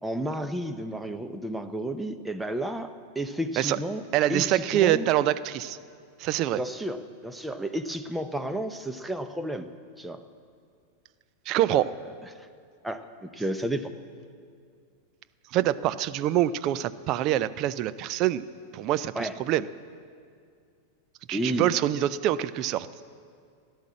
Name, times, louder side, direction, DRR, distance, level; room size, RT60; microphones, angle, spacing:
voice 1, 0.0-4.0 4.3-5.1 6.6-9.7 10.0-10.2 12.8-13.9 19.1-19.3 21.3-21.7, right 1 dB, 5° right, 8 dB, 0.8 m, -32 dB
voice 2, 4.1-5.8 6.2-6.6 11.5-11.9 15.5-18.4 18.7-19.7 21.3-22.9, right 13 dB, 40° right, 14 dB, 0.5 m, -25 dB
16.5 x 11.5 x 7.5 m, 2.2 s
figure-of-eight pair, 90°, 0 cm